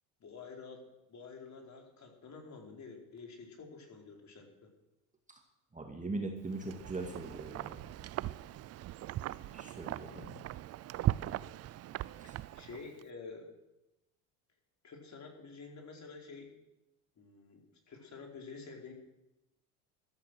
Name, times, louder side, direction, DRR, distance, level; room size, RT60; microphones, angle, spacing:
voice 1, 0.2-4.7 10.1-10.3 12.2-13.5 14.8-16.5 17.2-17.6 17.9-18.9, left 4 dB, 35° left, 1 dB, 4.5 m, -49 dB
voice 2, 5.7-7.8 9.5-10.2 12.3-12.4, right 3 dB, 15° right, 2 dB, 2.4 m, -40 dB
Wind, 6.5-13.0, right 14 dB, 35° right, 0.5 m, -39 dB
14.0 x 13.5 x 6.3 m, 0.94 s
supercardioid pair, 90°, 46 cm